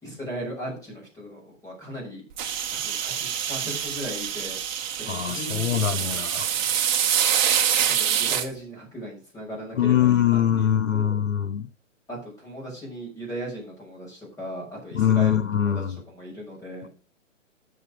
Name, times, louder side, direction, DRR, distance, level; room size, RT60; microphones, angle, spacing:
voice 1, 0.0-2.2 2.7-4.6 5.0-6.2 7.7-11.2 12.1-16.9, equal, 10° left, 6.5 m, -37 dB
sound 1, 2.4-8.5, right 9 dB, 35° right, 1.7 m, -25 dB
voice 2, 5.1-6.5 9.8-11.7 14.9-16.0, left 10 dB, 80° left, 1.0 m, -23 dB
10.0 x 7.4 x 6.0 m
hypercardioid pair, 135°, 38 cm